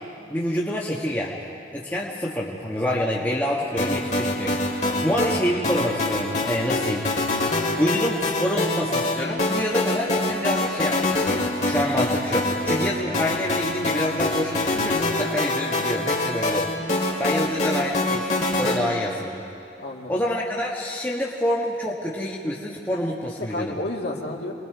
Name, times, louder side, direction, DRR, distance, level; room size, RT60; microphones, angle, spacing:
voice 1, 0.3-7.1 7.8-16.7 17.2-19.4 20.1-23.7, left 1 dB, 10° left, -5 dB, 1.3 m, -27 dB
sound 1, 3.8-18.8, left 2 dB, 40° left, 2.4 m, -25 dB
voice 2, 4.8-5.2 19.8-20.2 23.4-24.5, left 1 dB, 65° left, -1 dB, 2.3 m, -31 dB
28.0 x 21.0 x 4.7 m, 2.8 s
head